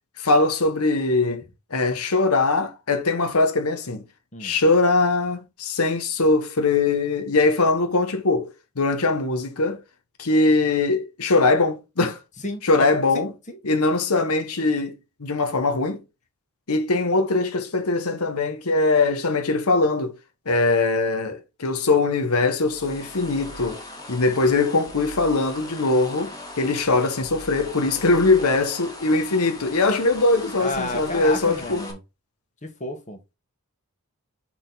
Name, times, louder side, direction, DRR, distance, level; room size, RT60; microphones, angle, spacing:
voice 1, 0.2-1.4 1.7-4.0 4.4-9.8 10.2-12.2 12.6-13.3 13.6-16.0 16.7-20.2 20.5-23.8 24.1-31.9, left 3 dB, 85° left, 1.1 m, -21 dB
voice 2, 12.4-12.9 13.1-13.6 30.6-32.0 32.6-33.2, left 2 dB, 35° left, 1.5 m, -32 dB
sound 1, 22.6-31.9, left 2 dB, 15° left, 1.6 m, -39 dB
6.1 x 4.3 x 4.0 m
head